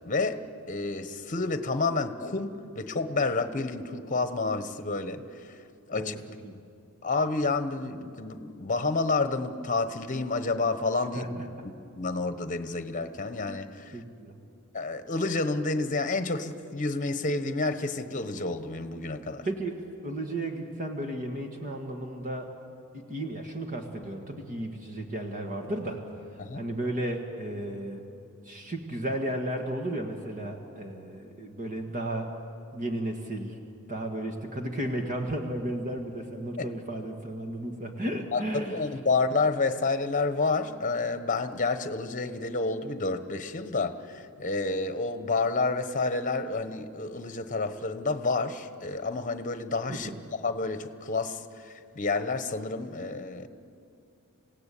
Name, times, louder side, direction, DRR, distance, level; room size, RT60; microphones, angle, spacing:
voice 1, 0.0-0.4 0.7-5.6 5.9-6.2 7.0-11.3 11.6-14.0 14.7-19.5 26.4-26.6 36.6-36.7 38.3-50.1 50.4-53.5, left 3 dB, 35° left, 10 dB, 1.1 m, -29 dB
voice 2, 13.9-14.4 19.5-22.5 22.9-26.0 26.5-28.0 28.5-32.3 32.7-33.6 33.9-38.8 49.9-50.2, right 1 dB, 35° right, 4 dB, 1.7 m, -34 dB
27.5 x 17.0 x 8.5 m, 2.5 s
head